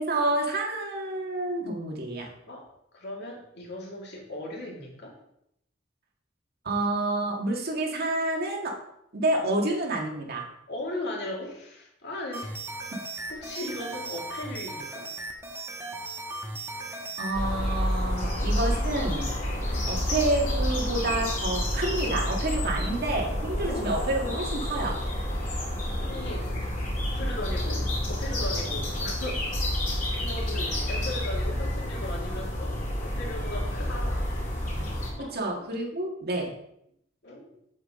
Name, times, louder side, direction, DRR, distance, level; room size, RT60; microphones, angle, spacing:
voice 1, 0.0-2.3 6.7-8.7 9.1-10.5 17.2-19.3 19.9-25.0 35.2-36.5, right 2 dB, 55° right, 0 dB, 1.8 m, -29 dB
voice 2, 2.9-5.2 10.7-12.6 13.3-15.1 19.6-20.0 22.6-22.9 23.5-23.9 26.0-26.5 27.1-29.7 30.1-34.3 35.2-35.4 37.2-37.5, left 1 dB, 60° left, -2 dB, 2.6 m, -38 dB
sound 1, 12.3-17.4, right 2 dB, 15° right, 1.2 m, -37 dB
sound 2, 17.3-35.1, equal, 40° left, 3.1 m, -29 dB
8.1 x 7.6 x 3.7 m, 0.76 s
head